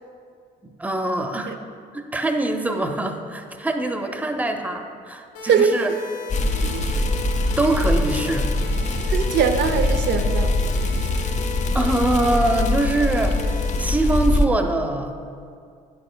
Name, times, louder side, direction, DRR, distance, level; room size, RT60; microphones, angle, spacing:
voice 1, 0.8-1.5 1.9-5.9 7.6-8.5 11.7-13.4 13.8-15.1, right 2 dB, 10° right, 5 dB, 0.6 m, -23 dB
sound 1, 5.3-13.9, left 2 dB, 90° left, 1.2 m, -36 dB
sound 2, 6.3-14.5, left 2 dB, 40° left, 0.5 m, -23 dB
voice 2, 9.0-10.5, right 6 dB, 65° right, 7 dB, 0.4 m, -21 dB
8.8 x 6.6 x 2.2 m, 2.3 s
supercardioid pair, 65°, 20 cm